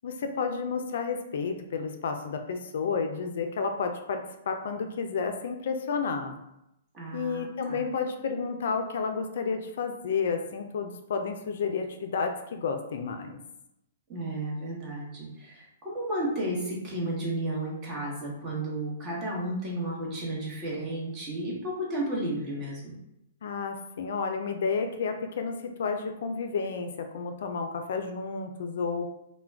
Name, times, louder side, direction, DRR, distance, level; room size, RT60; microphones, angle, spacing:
voice 1, 0.0-4.2 4.5-6.4 7.1-13.4 23.4-29.1, left 5 dB, 65° left, 5 dB, 0.3 m, -31 dB
voice 2, 6.9-7.8 14.1-23.0, right 1 dB, 30° right, -4 dB, 1.0 m, -33 dB
2.2 x 2.1 x 3.3 m, 0.84 s
hypercardioid pair, 125°, 0 cm